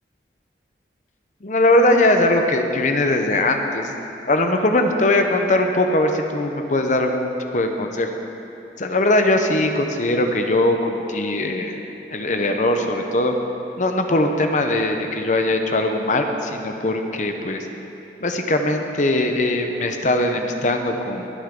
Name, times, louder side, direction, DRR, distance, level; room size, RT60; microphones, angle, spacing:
voice 1, 1.4-3.9 4.3-8.1 8.8-11.8 12.1-13.3 13.8-17.7 18.2-21.3, left 1 dB, 45° left, 5 dB, 0.8 m, -20 dB
21.0 x 7.3 x 3.7 m, 3.0 s
head